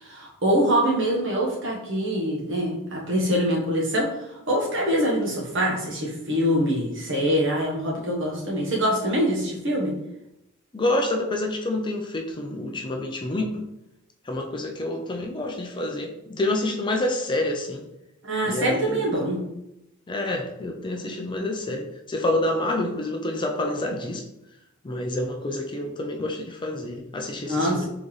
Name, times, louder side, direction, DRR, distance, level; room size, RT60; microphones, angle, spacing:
voice 1, 0.0-4.1 4.5-10.0 18.3-19.4 27.5-27.8, equal, 60° right, -3 dB, 1.3 m, -24 dB
voice 2, 10.7-13.6 14.3-17.8 18.5-19.0 20.1-24.2 24.8-27.8, left 1 dB, 20° left, 2 dB, 0.4 m, -28 dB
3.9 x 3.8 x 3.2 m, 0.87 s
head